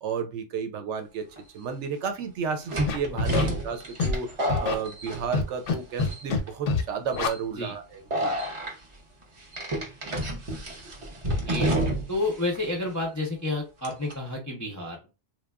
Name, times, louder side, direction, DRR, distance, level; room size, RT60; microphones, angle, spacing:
voice 1, 0.0-1.2 1.5-4.3 4.6-8.3, right 6 dB, 75° right, 0.9 m, -32 dB
sound 1, 1.4-1.5 2.7-5.7 6.0-6.5 7.1-7.4 8.1-8.7 9.5-12.3 12.5-12.6 13.8-14.1, right 1 dB, 40° right, 0.5 m, -29 dB
Scratching (performance technique), 2.9-3.4 4.0-4.2 4.5-4.7 5.3-5.7 6.0-6.4 6.7-6.8 7.1-7.3, left 4 dB, 90° left, 1.0 m, -25 dB
voice 2, 12.1-15.1, left 2 dB, 30° left, 0.3 m, -30 dB
2.9 x 2.2 x 2.2 m
omnidirectional pair, 1.2 m